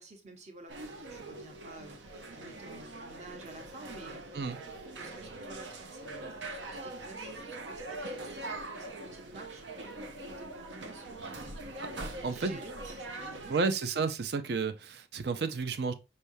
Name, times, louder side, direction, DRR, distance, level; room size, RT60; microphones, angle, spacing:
voice 1, 0.0-4.2 5.0-9.6 10.2-11.6 12.1-12.8 13.1-13.6, right 2 dB, 40° right, 0.9 m, -51 dB
sound 1, 0.7-13.6, right 2 dB, 85° right, 0.8 m, -42 dB
voice 2, 12.2-12.6 13.5-15.9, right 4 dB, 60° right, 0.5 m, -31 dB
5.4 x 3.4 x 2.6 m
head